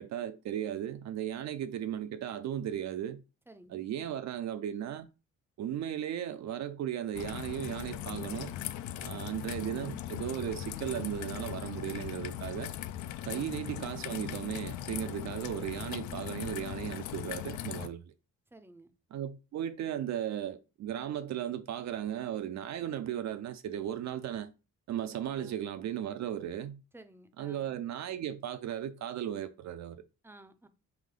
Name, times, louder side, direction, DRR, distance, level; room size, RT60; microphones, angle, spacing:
voice 1, 0.0-3.2 3.7-5.1 5.6-8.5 9.0-12.7 13.2-18.0 19.1-24.5 24.9-26.8 27.4-30.0, right 10 dB, 65° right, 0.5 m, -36 dB
voice 2, 3.5-3.9 13.3-13.6 18.5-18.9 25.3-25.6 26.9-27.8 30.2-30.7, right 2 dB, 10° right, 0.5 m, -55 dB
Raindrop / Trickle dribble, 7.1-17.9, left 12 dB, 75° left, 0.4 m, -39 dB
3.7 x 3.5 x 3.7 m
cardioid pair, 90°, 30 cm